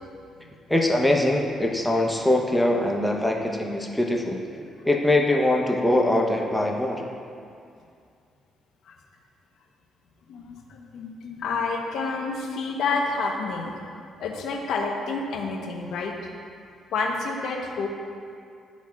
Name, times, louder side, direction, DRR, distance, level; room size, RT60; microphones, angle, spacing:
voice 1, 0.7-7.1, left 1 dB, 5° left, 0 dB, 0.8 m, -23 dB
voice 2, 10.3-13.8 14.2-16.3 16.9-17.9, left 4 dB, 75° left, 1 dB, 0.9 m, -29 dB
12.5 x 4.1 x 2.4 m, 2.4 s
cardioid pair, 90°, 0 cm